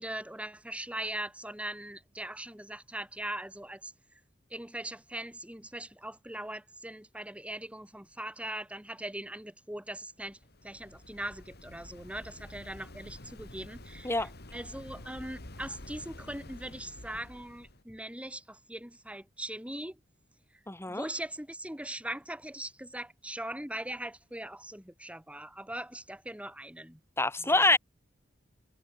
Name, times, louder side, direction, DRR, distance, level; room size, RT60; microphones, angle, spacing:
voice 1, 0.0-3.9 4.5-10.4 10.6-20.0 20.9-27.0 27.4-27.7, right 1 dB, 5° right, 7.9 m, -40 dB
Waves surf, 10.2-17.8, left 1 dB, 55° left, 4.0 m, -49 dB
voice 2, 20.7-21.0 27.2-27.8, left 2 dB, 15° left, 3.8 m, -25 dB
head